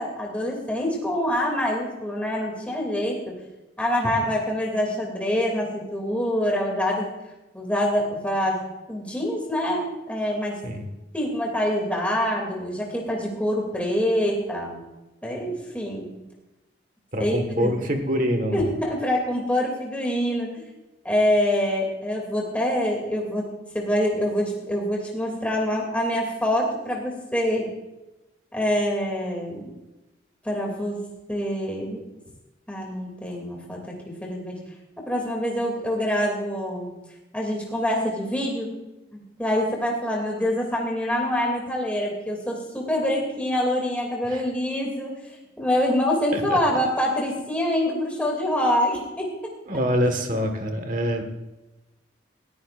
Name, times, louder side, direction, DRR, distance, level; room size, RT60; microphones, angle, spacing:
voice 1, 0.0-3.4 3.8-7.1 7.5-8.6 8.9-10.6 11.1-14.8 15.2-16.1 17.2-17.7 18.5-20.7 21.0-23.5 23.7-27.7 28.5-29.6 30.4-31.0 31.3-32.0 32.7-34.6 35.1-36.9 37.3-38.7 39.1-49.3, equal, 5° left, -2 dB, 2.6 m, -25 dB
voice 2, 17.1-18.7 44.3-44.4 46.3-46.6 49.7-51.2, equal, 45° right, 5 dB, 1.6 m, -25 dB
19.5 x 14.0 x 2.5 m, 1.0 s
head